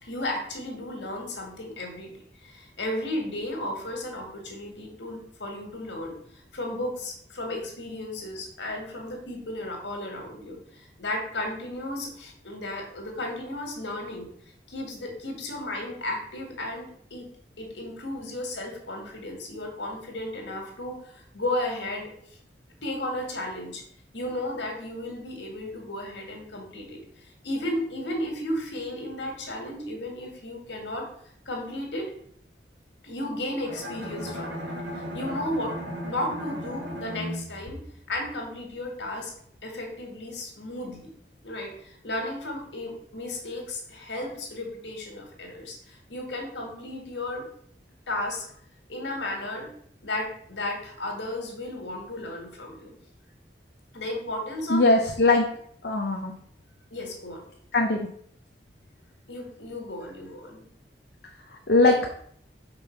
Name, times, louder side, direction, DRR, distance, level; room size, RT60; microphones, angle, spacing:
voice 1, 0.0-2.1 2.4-6.2 6.5-14.3 14.7-17.3 17.6-22.1 22.8-23.8 24.1-31.1 31.5-32.1 33.0-35.7 36.0-37.8 38.1-39.3 39.6-41.1 41.4-47.5 48.1-48.4 48.9-49.7 50.0-52.9 53.9-54.8 56.9-57.4 59.3-60.6, left 1 dB, 85° left, 1 dB, 1.9 m, -34 dB
Bowed string instrument, 33.6-38.7, equal, 90° right, 2.4 m, -36 dB
voice 2, 54.7-55.4 55.8-56.3 57.7-58.0 61.7-62.2, left 2 dB, 65° left, 1 dB, 0.8 m, -20 dB
5.4 x 4.0 x 5.8 m, 0.63 s
head